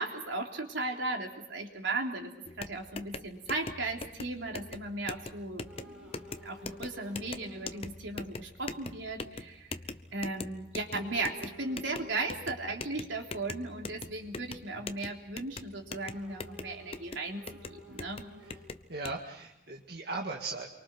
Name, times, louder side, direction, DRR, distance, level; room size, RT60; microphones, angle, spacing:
voice 1, 0.0-2.3 2.6-9.7 10.1-17.4 17.7-18.3, right 2 dB, 80° right, 1 dB, 3.5 m, -36 dB
sound 1, 2.5-19.2, left 3 dB, 30° left, 0.8 m, -43 dB
sound 2, 5.6-7.9 8.3-8.5 10.9-12.3 15.9-19.0 19.3-19.4, left 1 dB, 5° right, 7.3 m, -52 dB
voice 2, 18.9-20.7, right 3 dB, 55° right, 0 dB, 2.0 m, -38 dB
28.5 x 23.5 x 6.2 m, 0.83 s
head